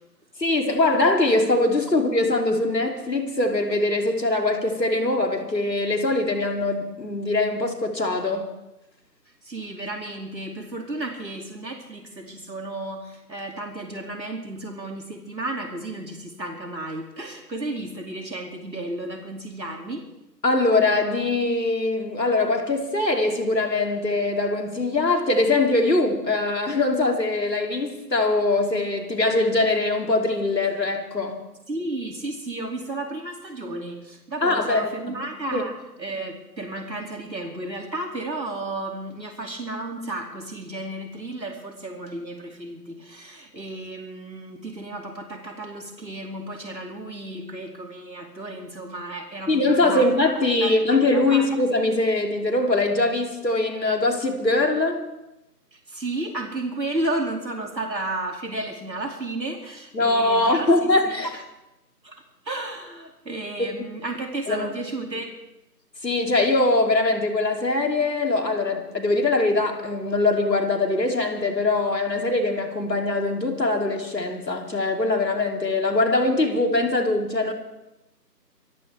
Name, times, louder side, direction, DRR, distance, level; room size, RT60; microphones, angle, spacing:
voice 1, 0.4-8.5 20.4-31.4 34.4-34.9 35.5-35.6 49.5-55.0 59.9-61.3 63.6-63.7 64.5-64.7 66.0-77.5, left 2 dB, 75° left, 3.0 m, -22 dB
voice 2, 9.3-20.1 31.7-50.1 50.6-51.5 55.7-61.4 62.0-65.3, right 2 dB, 85° right, 2.6 m, -33 dB
24.5 x 15.0 x 3.4 m
figure-of-eight pair, 160°, 50 cm